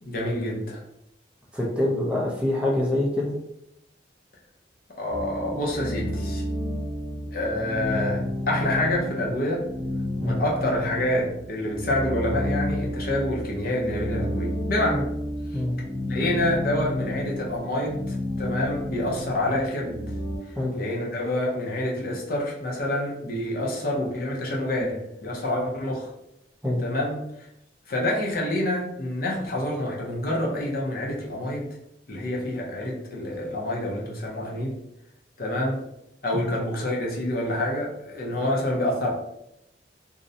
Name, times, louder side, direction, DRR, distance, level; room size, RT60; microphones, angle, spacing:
voice 1, 0.0-0.8 5.0-6.4 7.3-9.7 10.2-15.1 15.5-15.6 16.1-20.0 20.4-26.1 26.8-27.5 27.9-31.7 32.1-34.8 35.4-35.8 36.2-39.1, left 1 dB, 55° left, -2 dB, 0.6 m, -27 dB
voice 2, 1.5-3.3 10.2-10.4 15.5-15.8 20.6-20.8 26.6-26.8 36.3-36.6, left 1 dB, 5° right, -5 dB, 0.4 m, -25 dB
sound 1, 5.1-20.4, left 1 dB, 45° right, 0.8 m, -31 dB
2.5 x 2.0 x 2.6 m, 0.82 s
head